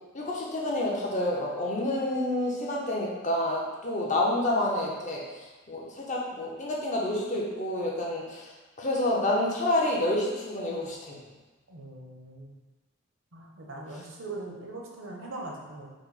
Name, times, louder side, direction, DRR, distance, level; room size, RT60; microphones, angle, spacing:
voice 1, 0.1-5.2 5.7-8.5 8.8-11.2, left 1 dB, 35° left, -3 dB, 0.7 m, -28 dB
voice 2, 11.7-12.5 13.3-15.9, right 2 dB, 75° right, -1 dB, 0.8 m, -41 dB
4.7 x 2.1 x 4.0 m, 1.2 s
head